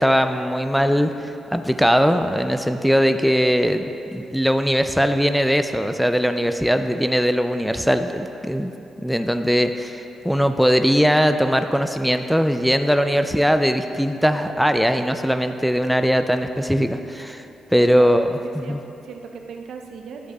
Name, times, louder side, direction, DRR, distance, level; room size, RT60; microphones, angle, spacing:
voice 1, 0.0-3.8 4.1-8.7 9.0-17.5 17.7-18.4 18.7-18.8, equal, ahead, 8 dB, 0.3 m, -20 dB
voice 2, 17.8-20.3, right 5 dB, 75° right, 3 dB, 0.7 m, -39 dB
11.0 x 7.7 x 2.3 m, 2.9 s
cardioid pair, 85°, 0 cm